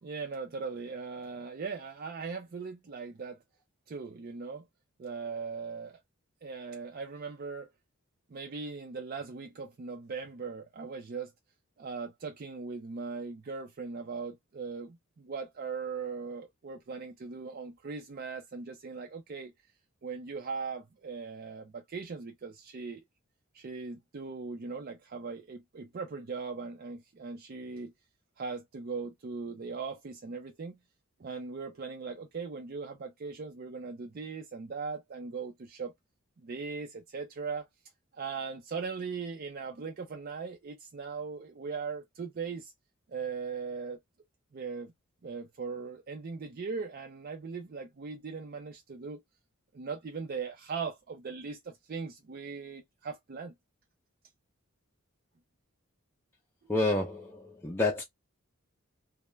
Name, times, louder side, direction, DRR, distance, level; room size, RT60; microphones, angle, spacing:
voice 1, 0.0-3.4 3.9-4.7 5.0-6.0 6.4-7.7 8.3-11.3 11.8-19.5 20.0-23.0 23.5-27.9 28.4-30.8 31.2-35.9 36.4-37.7 38.1-42.7 43.1-44.0 44.5-44.9 45.2-49.2 49.7-53.5, right 5 dB, 45° right, 0.4 m, -39 dB
voice 2, 56.7-58.0, left 2 dB, 10° left, 0.4 m, -29 dB
2.2 x 2.1 x 3.0 m
head